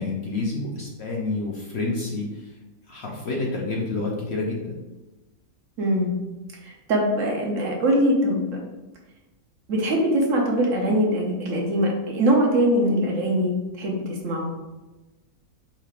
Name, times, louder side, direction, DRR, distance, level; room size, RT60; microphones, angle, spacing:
voice 1, 0.0-2.5 2.9-4.8, left 3 dB, 55° left, -3 dB, 0.8 m, -28 dB
voice 2, 5.8-6.1 6.6-8.5 9.7-14.5, equal, 65° right, -1 dB, 1.1 m, -22 dB
5.5 x 3.4 x 2.4 m, 1.1 s
omnidirectional pair, 1.6 m